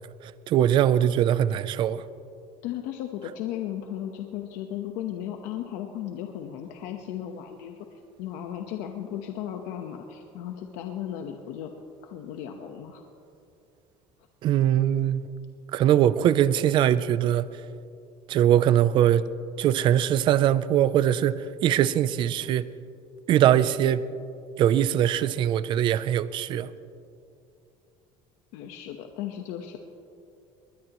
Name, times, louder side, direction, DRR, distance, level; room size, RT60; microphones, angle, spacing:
voice 1, 0.2-2.0 14.4-15.2 15.7-17.5 18.3-19.2 19.6-22.7 23.3-24.0 24.6-26.7, right 11 dB, 40° right, 0.5 m, -22 dB
voice 2, 2.6-7.9 8.2-11.7 12.0-13.1 28.5-29.8, left 10 dB, 75° left, 1.1 m, -35 dB
21.5 x 20.0 x 3.1 m
cardioid pair, 165°, 13 cm